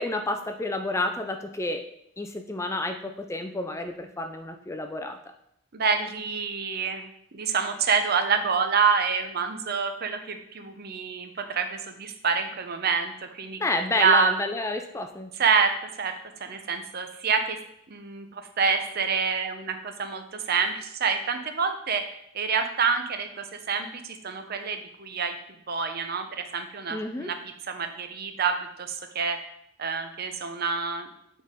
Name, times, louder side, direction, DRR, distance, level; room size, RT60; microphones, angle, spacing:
voice 1, 0.0-1.8 2.2-5.2 13.6-15.3 26.9-27.3, left 2 dB, 15° left, 5 dB, 0.4 m, -30 dB
voice 2, 5.7-7.0 7.3-13.6 13.9-14.3 15.4-17.6 17.9-25.4 25.7-27.4 27.7-29.4 29.8-31.1, right 5 dB, 50° right, 7 dB, 0.7 m, -27 dB
8.4 x 4.1 x 3.6 m, 0.73 s
head